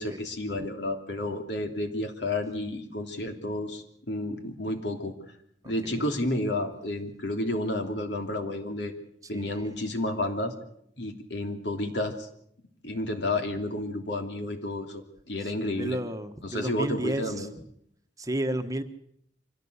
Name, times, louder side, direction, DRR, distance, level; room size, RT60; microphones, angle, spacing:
voice 1, 0.0-5.1 5.6-8.9 9.3-10.5 11.0-12.3 12.8-16.0 16.4-17.5, left 1 dB, 65° left, 5 dB, 3.2 m, -31 dB
voice 2, 5.6-6.0 9.3-9.7 15.6-17.5 18.2-18.8, right 1 dB, 20° right, 6 dB, 1.3 m, -32 dB
25.0 x 17.0 x 8.2 m, 0.71 s
head